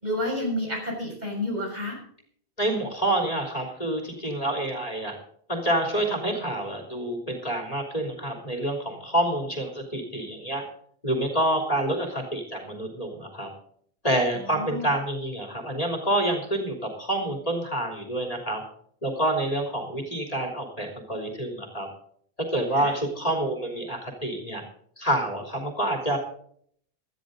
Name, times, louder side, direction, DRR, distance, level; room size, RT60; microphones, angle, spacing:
voice 1, 0.0-2.0 14.5-14.9 22.7-22.9, left 1 dB, 45° right, -1 dB, 6.6 m, -30 dB
voice 2, 2.6-5.2 5.5-10.6 11.0-13.5 14.0-18.6 19.0-21.9 22.5-24.6 25.0-26.2, right 1 dB, 35° left, 1 dB, 3.3 m, -27 dB
17.5 x 13.5 x 3.9 m, 0.62 s
omnidirectional pair, 1.0 m